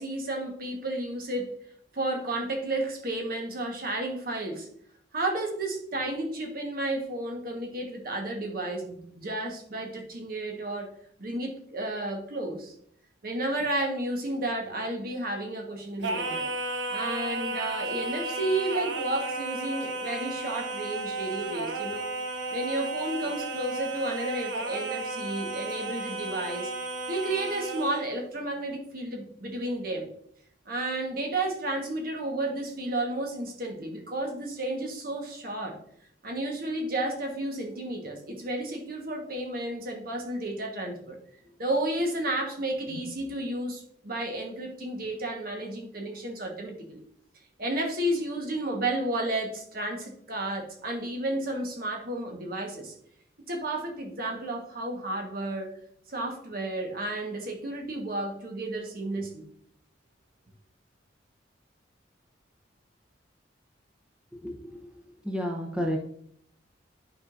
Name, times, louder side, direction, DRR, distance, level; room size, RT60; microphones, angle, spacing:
voice 1, 0.0-1.5 1.9-4.7 5.1-10.9 11.2-12.7 13.2-16.5 16.9-22.1 22.5-26.7 27.1-30.1 30.7-35.8 36.2-41.2 41.6-47.0 47.6-52.9 53.5-55.7 56.1-59.4, right 1 dB, 50° right, 2 dB, 1.4 m, -32 dB
Singing, 16.0-28.1, right 2 dB, 80° right, 0.9 m, -33 dB
voice 2, 65.2-66.0, equal, 5° right, 0 dB, 0.8 m, -29 dB
10.5 x 4.9 x 2.6 m, 0.66 s
head